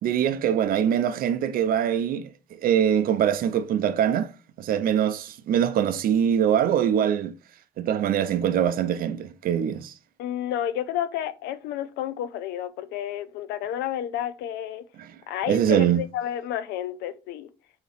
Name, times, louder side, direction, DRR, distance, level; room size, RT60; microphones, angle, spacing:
voice 1, 0.0-4.3 4.6-7.3 7.8-9.9 15.0-15.1 15.5-16.0, right 9 dB, 60° right, 0.5 m, -23 dB
voice 2, 10.2-14.8 15.3-17.5, left 11 dB, 85° left, 0.5 m, -31 dB
3.9 x 2.9 x 4.1 m
cardioid pair, 110°, 17 cm